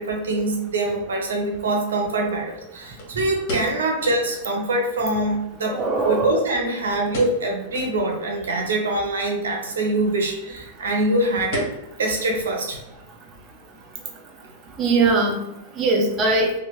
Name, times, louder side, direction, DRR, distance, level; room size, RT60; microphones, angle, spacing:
voice 1, 0.0-5.8 6.0-11.6 12.0-12.8, right 2 dB, 90° right, 1 dB, 0.7 m, -24 dB
sound 1, 3.0-4.3 4.6-4.7 5.0-5.1 5.8-6.6 7.1-7.5 7.7-8.0 8.5-8.6 9.5-9.8 10.2-10.3 10.6-11.0 11.5-12.6 12.9-13.0 13.6-13.9 14.2-14.3, left 1 dB, 55° left, 1.2 m, -34 dB
voice 2, 5.7-6.4 14.8-15.3 15.8-16.5, right 3 dB, 30° right, 1 dB, 0.5 m, -20 dB
2.6 x 2.4 x 3.1 m, 0.93 s
hypercardioid pair, 125°, 0 cm